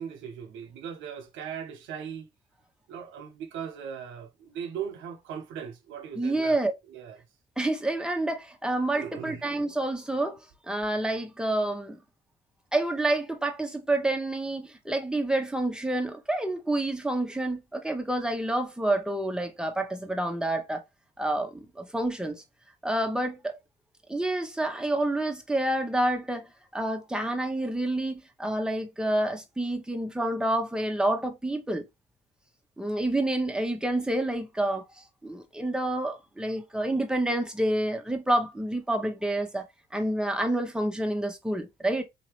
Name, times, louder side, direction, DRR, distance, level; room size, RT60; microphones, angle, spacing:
voice 1, 0.0-2.3 2.9-6.6 6.9-7.2 9.0-9.4, right 8 dB, 75° right, 0.7 m, -38 dB
voice 2, 6.1-6.7 7.6-10.4 10.7-12.0 12.7-20.8 21.2-22.4 22.8-23.5 24.1-26.5 26.7-31.8 32.8-34.8 35.2-39.6 39.9-42.0, right 1 dB, 5° right, 1.2 m, -28 dB
4.0 x 2.8 x 3.3 m
hypercardioid pair, 50°, 20 cm